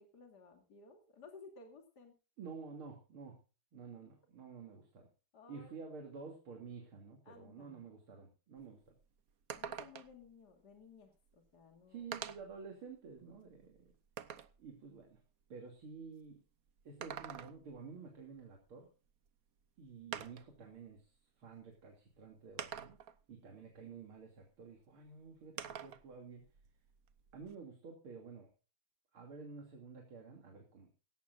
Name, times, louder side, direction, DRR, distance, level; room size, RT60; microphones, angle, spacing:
voice 1, 0.0-2.2 5.3-5.7 7.3-7.8 9.6-12.1, left 4 dB, 50° left, 4 dB, 3.0 m, -57 dB
voice 2, 2.4-3.4 3.7-5.1 5.5-8.9 11.9-13.9 14.6-15.2 15.5-16.4 16.9-18.9 19.8-21.1 21.4-23.0 23.3-26.4 27.3-28.5 29.1-31.0, right 5 dB, 80° right, 2 dB, 3.6 m, -51 dB
sound 1, 8.6-8.7 9.0-9.1 9.5-10.2 11.3-11.4 12.1-12.6 13.2-14.6 16.8-17.8 19.3-19.4 20.1-20.6 21.6-21.7 22.6-23.2 25.6-26.1 26.4-27.5, right 8 dB, 55° right, 1.2 m, -46 dB
17.5 x 15.5 x 2.6 m, 0.34 s
omnidirectional pair, 2.3 m